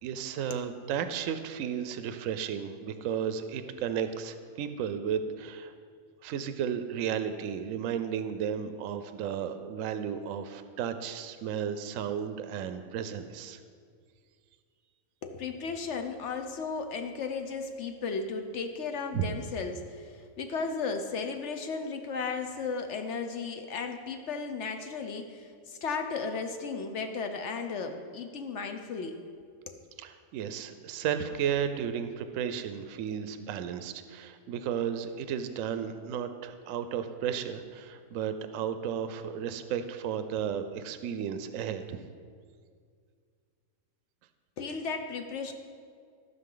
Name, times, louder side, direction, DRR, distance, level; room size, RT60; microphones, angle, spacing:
voice 1, 0.0-5.7 6.2-13.6 19.1-19.3 30.0-42.0, right 8 dB, 75° right, 10 dB, 0.9 m, -33 dB
voice 2, 15.2-29.2 29.7-29.8 44.6-45.5, left 4 dB, 60° left, 6 dB, 0.9 m, -35 dB
15.0 x 5.5 x 3.8 m, 2.1 s
omnidirectional pair, 1.5 m